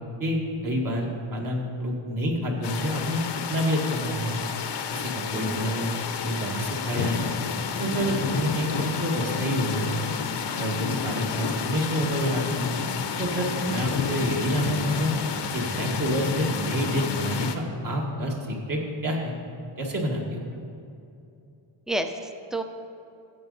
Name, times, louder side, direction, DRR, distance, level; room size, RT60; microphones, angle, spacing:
voice 1, 0.2-3.2 3.5-4.4 4.9-6.0 6.2-7.3 7.8-10.0 10.6-12.7 13.2-15.1 15.5-19.3 19.8-20.4, equal, 40° right, -1 dB, 1.9 m, -28 dB
sound 1, 2.6-17.6, left 6 dB, 60° left, 0.8 m, -30 dB
voice 2, 21.9-22.6, right 1 dB, ahead, 6 dB, 0.6 m, -30 dB
14.0 x 8.6 x 4.1 m, 2.6 s
wide cardioid pair, 105°, 48 cm